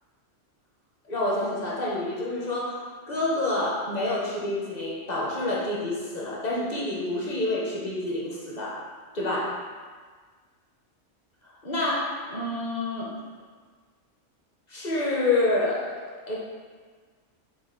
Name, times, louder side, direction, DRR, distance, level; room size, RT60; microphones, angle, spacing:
voice 1, 1.1-8.8 9.1-9.6 11.6-13.1 14.7-16.0 16.3-16.4, left 2 dB, 40° left, -4 dB, 0.8 m, -28 dB
4.1 x 2.7 x 3.8 m, 1.5 s
omnidirectional pair, 1.2 m